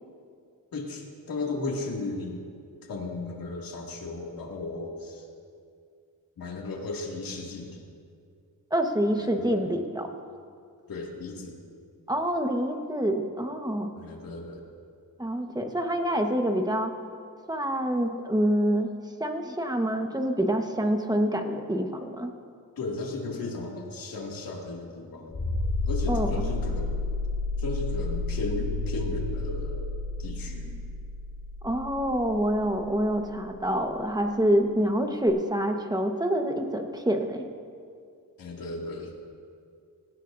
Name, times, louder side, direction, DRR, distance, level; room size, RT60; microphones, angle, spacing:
voice 1, 0.7-2.4 2.8-5.3 6.4-7.8 9.2-9.5 10.9-11.6 14.0-14.6 22.8-25.4 25.6-27.0 27.6-30.8 38.4-39.2, left 2 dB, 75° left, -1 dB, 2.4 m, -35 dB
voice 2, 8.7-10.1 12.1-13.9 15.2-16.9 17.5-18.9 19.2-22.3 26.1-26.3 31.6-37.5, equal, 10° right, 4 dB, 1.3 m, -26 dB
sound 1, 25.3-33.8 35.3-35.4, left 2 dB, 40° left, 3.3 m, -31 dB
19.0 x 17.0 x 2.7 m, 2.3 s
cardioid pair, 85°, 34 cm